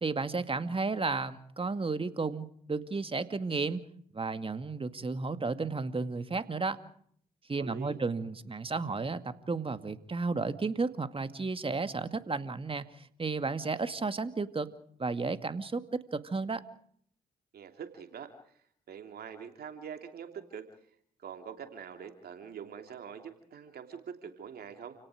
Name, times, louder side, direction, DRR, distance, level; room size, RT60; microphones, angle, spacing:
voice 1, 0.0-3.8 4.1-6.8 7.5-14.7 15.0-16.6, right 4 dB, 35° right, 10 dB, 2.2 m, -33 dB
voice 2, 7.6-8.0 17.5-18.6 18.9-20.6 21.2-24.9, right 7 dB, 70° right, 6 dB, 3.1 m, -44 dB
30.0 x 18.0 x 5.0 m, 0.62 s
supercardioid pair, 50°, 17 cm